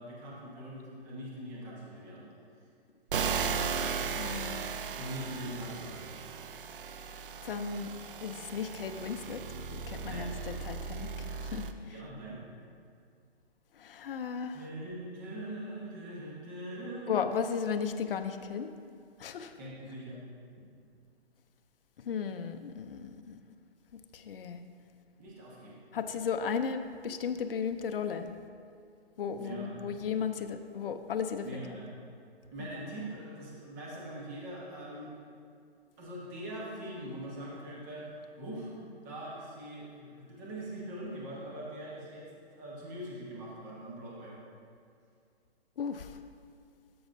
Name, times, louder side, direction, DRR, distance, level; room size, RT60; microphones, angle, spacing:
voice 1, 0.0-2.2 4.9-6.0 10.1-10.3 11.9-12.4 14.5-17.2 19.5-20.2 25.2-25.8 29.4-29.8 31.4-31.9 32.5-35.2 36.0-38.1 38.4-38.7 39.0-44.4, right 1 dB, 15° right, -5 dB, 1.0 m, -42 dB
sound 1, 3.1-11.7, right 6 dB, 55° right, 0.5 m, -36 dB
voice 2, 3.8-4.7 7.4-7.9 8.2-9.4 9.7-11.9 13.8-14.6 17.1-18.7 19.2-19.5 22.1-23.4 24.1-24.6 25.9-28.3 29.2-31.4 45.8-46.2, left 6 dB, 60° left, 8 dB, 0.5 m, -35 dB
12.5 x 6.2 x 2.6 m, 2.3 s
hypercardioid pair, 165°, 32 cm